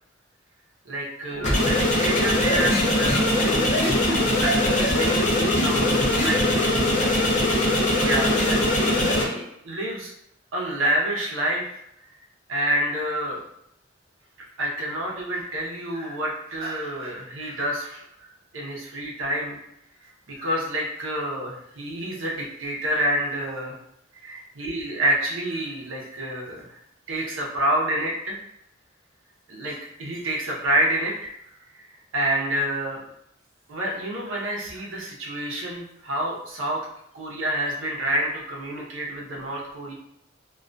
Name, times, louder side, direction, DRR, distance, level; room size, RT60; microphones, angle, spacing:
voice 1, 0.8-3.8 4.4-6.4 8.0-10.1 10.5-11.6 12.5-13.4 14.4-18.0 18.5-19.6 20.0-23.8 24.2-26.8 27.1-28.4 29.5-31.3 32.1-33.0 33.7-36.8 37.1-39.9, right 1 dB, 80° right, -2 dB, 0.6 m, -28 dB
sound 1, 1.4-9.2, left 1 dB, 35° left, 0.4 m, -21 dB
2.3 x 2.2 x 2.5 m, 0.77 s
head